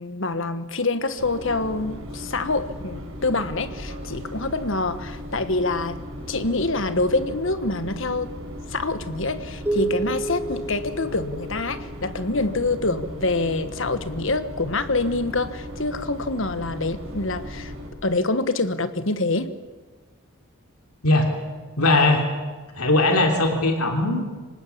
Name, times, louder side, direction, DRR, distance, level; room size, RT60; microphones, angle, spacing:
voice 1, 0.0-6.0 6.3-8.3 8.7-17.7 18.0-19.5, left 2 dB, 60° left, 11 dB, 1.4 m, -26 dB
sound 1, 1.2-17.9, equal, 65° right, 4.8 m, -37 dB
sound 2, 9.7-12.2, right 3 dB, 10° right, 1.8 m, -30 dB
voice 2, 21.8-22.3 22.8-24.2, left 2 dB, 85° left, 4 dB, 3.2 m, -19 dB
25.5 x 19.5 x 8.5 m, 1.3 s
head